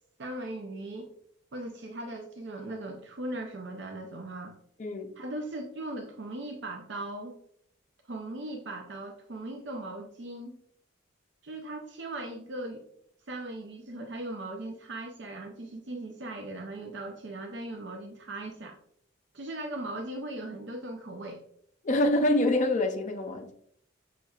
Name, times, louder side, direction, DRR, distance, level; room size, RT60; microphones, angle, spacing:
voice 1, 0.2-1.1 1.5-4.5 5.2-7.4 8.1-10.6 11.4-12.8 13.3-18.7 19.3-21.4, right 2 dB, 55° right, 0.5 m, -38 dB
voice 2, 4.8-5.1 21.8-23.5, left 1 dB, 35° left, 0.5 m, -26 dB
6.2 x 3.2 x 2.3 m
head